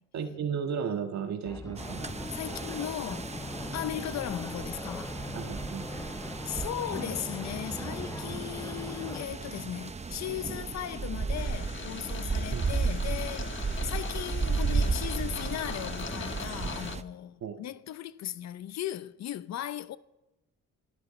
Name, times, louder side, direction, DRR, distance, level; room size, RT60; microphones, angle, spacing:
voice 1, 0.1-2.1 5.3-5.9 12.5-12.6 17.4-17.6, right 7 dB, 65° right, 1.6 m, -34 dB
sound 1, 1.5-9.3, left 2 dB, 10° left, 0.6 m, -41 dB
sound 2, 1.8-17.0, right 4 dB, 20° right, 0.8 m, -34 dB
voice 2, 2.3-3.3 3.7-5.2 5.9-6.1 6.4-20.0, left 11 dB, 60° left, 0.6 m, -37 dB
sound 3, 11.4-17.0, left 6 dB, 40° left, 1.2 m, -41 dB
27.0 x 13.0 x 3.2 m
cardioid pair, 90°, 30 cm